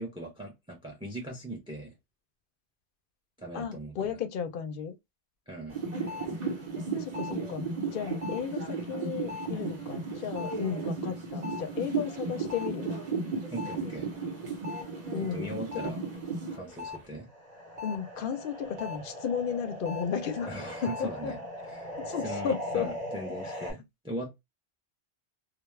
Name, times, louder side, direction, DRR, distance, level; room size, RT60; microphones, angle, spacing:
voice 1, 0.0-1.9 3.4-4.2 5.5-5.8 13.5-14.1 15.3-16.0 16.5-17.3 20.5-22.0 22.2-24.4, right 1 dB, 5° right, 0.4 m, -40 dB
voice 2, 3.5-5.0 7.0-7.7 7.9-13.0 15.1-15.5 17.8-20.6 20.8-21.3 22.0-22.9, left 7 dB, 60° left, 0.6 m, -34 dB
sound 1, 5.7-17.0 17.4-23.7, right 2 dB, 45° right, 0.8 m, -36 dB
2.3 x 2.0 x 3.0 m
omnidirectional pair, 1.1 m